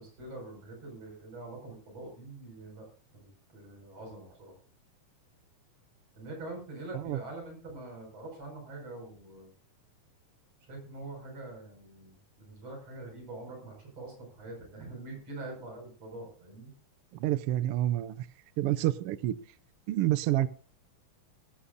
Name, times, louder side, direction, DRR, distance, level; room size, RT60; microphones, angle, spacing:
voice 1, 0.0-2.9 3.1-4.6 6.2-9.5 10.6-16.7, right 2 dB, 55° right, 1 dB, 7.1 m, -44 dB
voice 2, 17.2-18.3 18.6-19.4 19.9-20.5, right 14 dB, 85° right, 15 dB, 1.2 m, -28 dB
18.5 x 14.0 x 2.6 m, 0.38 s
omnidirectional pair, 3.5 m